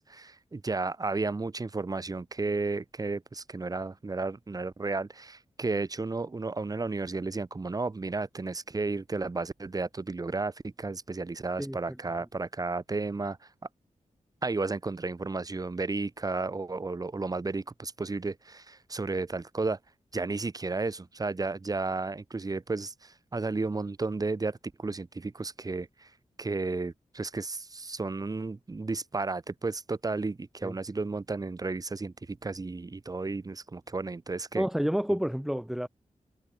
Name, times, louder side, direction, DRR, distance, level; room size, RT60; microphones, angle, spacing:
voice 1, 0.0-13.4 14.4-19.8 20.1-26.1 26.4-34.7, right 3 dB, 30° right, 3.4 m, -33 dB
voice 2, 34.5-35.9, equal, ahead, 4.9 m, -29 dB
wide cardioid pair, 180°, 13 cm